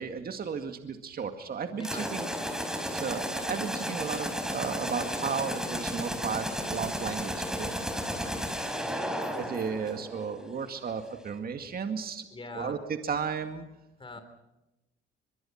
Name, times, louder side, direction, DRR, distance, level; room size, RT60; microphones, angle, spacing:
voice 1, 0.0-2.3 2.9-7.7 9.3-12.3 12.6-12.8 13.0-13.7, right 6 dB, 50° right, 6 dB, 2.1 m, -34 dB
voice 2, 1.7-2.5 7.9-9.0 12.3-12.7 14.0-14.2, left 3 dB, 25° left, 8 dB, 3.5 m, -44 dB
sound 1, 1.8-10.4, equal, 5° right, 4.7 m, -33 dB
23.5 x 23.0 x 5.9 m, 0.96 s
cardioid pair, 90°, 20 cm